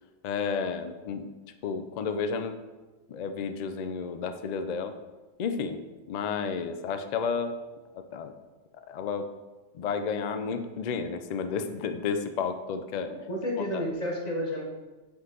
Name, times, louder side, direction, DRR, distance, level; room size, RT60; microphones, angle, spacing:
voice 1, 0.2-1.3 1.6-2.6 3.1-4.9 5.4-5.8 6.1-7.5 7.9-8.3 8.9-9.3 9.7-13.1 13.6-13.8, left 5 dB, 80° left, 7 dB, 0.3 m, -31 dB
voice 2, 13.1-14.6, left 1 dB, 35° left, -1 dB, 1.0 m, -31 dB
8.0 x 3.9 x 3.8 m, 1.2 s
omnidirectional pair, 1.3 m